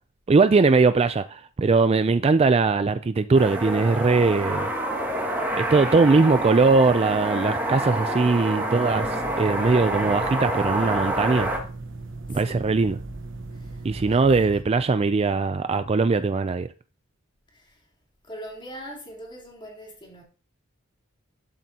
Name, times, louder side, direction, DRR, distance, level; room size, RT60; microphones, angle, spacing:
voice 1, 0.3-4.7 5.5-11.5 12.3-13.0 13.8-16.7, right 4 dB, 30° right, 0.3 m, -20 dB
sound 1, 3.3-11.6, right 1 dB, 10° right, 2.1 m, -27 dB
sound 2, 9.0-14.6, right 2 dB, 65° right, 1.1 m, -37 dB
voice 2, 12.3-12.8 13.5-14.7 17.5-17.8 18.2-20.2, equal, 25° left, 3.2 m, -42 dB
12.0 x 7.6 x 2.8 m
head